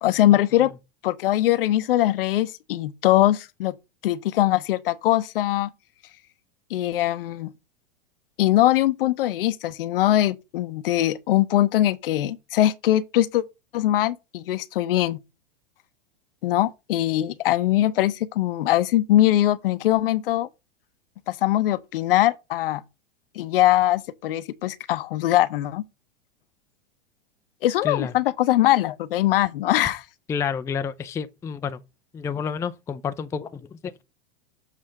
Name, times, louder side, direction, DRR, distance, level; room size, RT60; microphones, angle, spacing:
voice 1, 0.0-0.7 1.0-3.7 4.0-5.7 6.7-7.5 8.4-13.4 13.7-15.2 16.4-20.5 21.3-22.8 23.4-25.8 27.6-30.0, left 14 dB, 70° left, 0.7 m, -21 dB
voice 2, 27.8-28.1 30.3-31.8 32.1-34.0, left 6 dB, 10° left, 0.4 m, -30 dB
7.5 x 3.4 x 5.0 m
hypercardioid pair, 105°, 30 cm